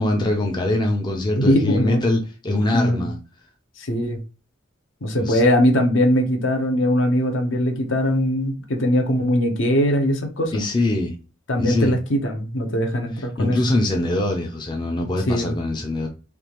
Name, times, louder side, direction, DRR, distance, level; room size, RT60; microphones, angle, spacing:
voice 1, 0.0-3.2 5.2-5.4 10.5-11.2 11.6-11.9 13.4-16.1, left 2 dB, 20° left, 0.5 m, -23 dB
voice 2, 1.4-2.0 2.7-3.0 3.8-4.2 5.0-10.7 11.5-13.6 15.3-15.5, equal, 65° left, 0.8 m, -21 dB
3.4 x 2.4 x 2.9 m
head